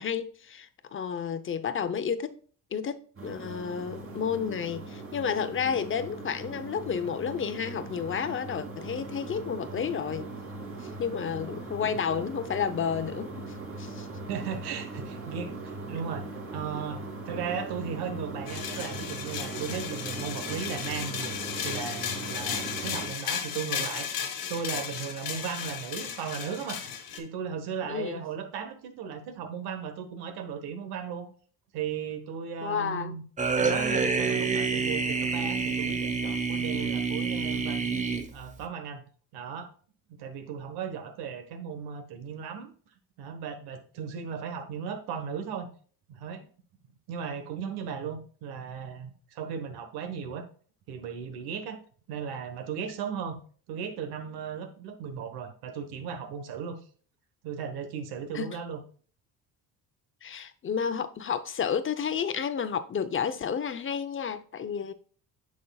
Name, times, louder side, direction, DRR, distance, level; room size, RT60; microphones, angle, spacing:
voice 1, 0.0-2.4 2.7-10.3 10.8-14.1 27.9-28.2 32.6-33.2 58.3-58.6 60.2-64.9, left 7 dB, 35° left, 0.7 m, -31 dB
sound 1, 3.2-23.1, right 2 dB, 35° right, 2.7 m, -40 dB
voice 2, 14.3-24.2 24.5-26.8 27.2-31.3 31.7-33.2 33.6-37.9 38.3-39.0 39.3-39.7 40.1-42.7 43.2-45.7 46.1-46.4 47.1-50.5 50.9-51.8 52.1-53.4 53.7-56.8 57.4-58.8, right 7 dB, 90° right, 1.3 m, -36 dB
sound 2, 18.5-27.2, left 8 dB, 70° left, 1.5 m, -35 dB
sound 3, 33.4-38.6, right 4 dB, 20° right, 0.9 m, -28 dB
9.7 x 6.3 x 2.3 m
cardioid pair, 100°, 37 cm